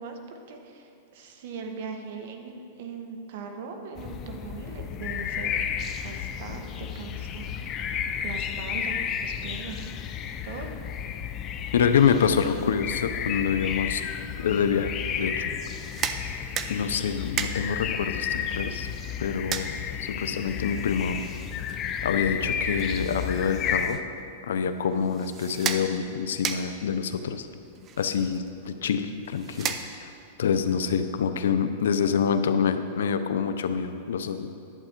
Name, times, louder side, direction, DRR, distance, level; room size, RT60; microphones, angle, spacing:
voice 1, 0.0-5.6 6.0-7.5 7.8-8.0 8.2-9.9 10.4-10.7, right 5 dB, 60° right, 4 dB, 1.2 m, -40 dB
sound 1, 4.0-23.9, left 8 dB, 25° left, 0.5 m, -32 dB
voice 2, 11.7-14.0 14.4-15.5 16.7-18.9 19.2-19.7 20.0-21.2 22.0-24.0 24.5-27.5 28.0-29.8 30.0-30.1 30.4-34.6, left 7 dB, 90° left, 9 dB, 0.6 m, -26 dB
sound 2, 15.7-30.3, right 7 dB, 25° right, 0.5 m, -37 dB
11.0 x 7.9 x 4.5 m, 2.7 s
supercardioid pair, 155°, 0 cm